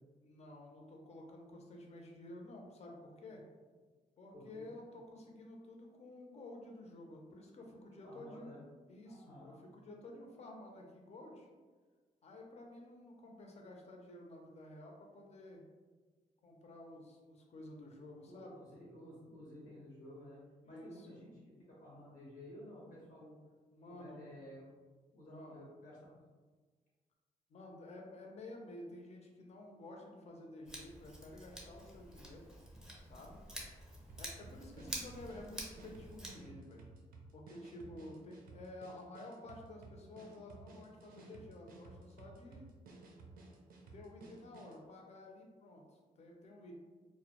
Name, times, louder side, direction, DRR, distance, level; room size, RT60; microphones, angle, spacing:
voice 1, 0.2-3.4 4.2-8.6 8.9-11.5 12.2-15.6 16.4-18.6 20.6-21.2 23.7-24.3 25.3-25.6 27.5-32.5 33.1-33.4 34.1-36.8 37.3-42.7 43.9-46.7, left 1 dB, 45° left, 1 dB, 0.5 m, -52 dB
voice 2, 4.3-4.8 7.6-7.7 8.0-8.6 9.0-9.6 18.2-20.4 20.6-23.4 23.9-24.7 25.1-26.0 34.8-35.0, left 1 dB, 85° left, -6 dB, 0.7 m, -53 dB
Scissors, 30.7-36.3, right 1 dB, 5° right, 0.6 m, -48 dB
sound 1, 34.1-44.8, right 3 dB, 75° right, 0.4 m, -56 dB
2.1 x 2.1 x 2.8 m, 1.4 s
cardioid pair, 100°, 15 cm